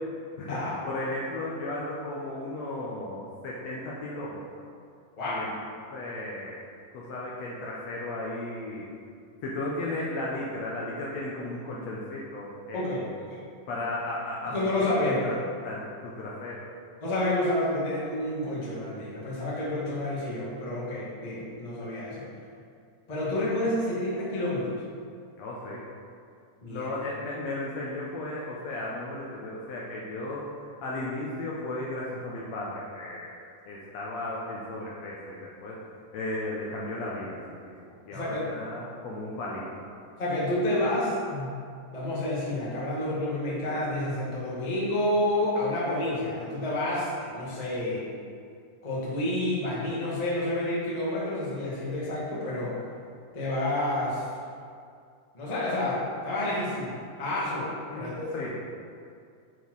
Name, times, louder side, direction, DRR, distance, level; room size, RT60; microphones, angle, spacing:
voice 1, 0.4-4.4 5.2-5.5 5.9-6.6 6.9-8.9 9.4-13.1 13.7-15.0 15.3-15.4 15.6-16.7 25.4-25.8 26.7-30.5 30.8-33.4 33.6-35.8 36.1-37.7 38.0-39.8 57.9-58.5, left 2 dB, 75° left, -4 dB, 1.6 m, -35 dB
voice 2, 5.2-5.5 12.7-13.5 14.5-15.4 17.0-22.2 23.1-24.8 26.6-26.9 38.1-38.4 40.2-41.6 41.9-48.1 48.8-52.8 53.3-54.3 55.3-58.5, left 1 dB, 55° left, -7 dB, 0.4 m, -29 dB
7.1 x 4.4 x 4.6 m, 2.3 s
omnidirectional pair, 3.8 m